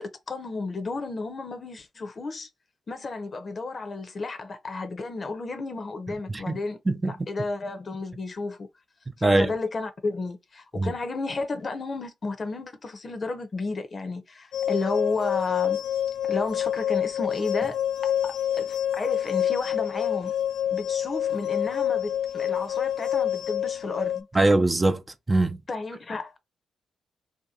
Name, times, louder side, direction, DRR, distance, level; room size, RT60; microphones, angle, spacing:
voice 1, 0.0-2.5 2.9-6.8 7.0-8.7 9.2-15.8 16.3-17.8 18.0-20.3 20.7-24.3 25.7-26.4, left 3 dB, 45° left, 0.8 m, -32 dB
voice 2, 9.2-9.5 10.7-10.9 24.3-25.0 25.3-25.6, right 2 dB, 25° right, 0.6 m, -22 dB
sound 1, 14.5-24.2, left 10 dB, 75° left, 0.4 m, -27 dB
2.9 x 2.5 x 3.7 m
hypercardioid pair, 45°, 0 cm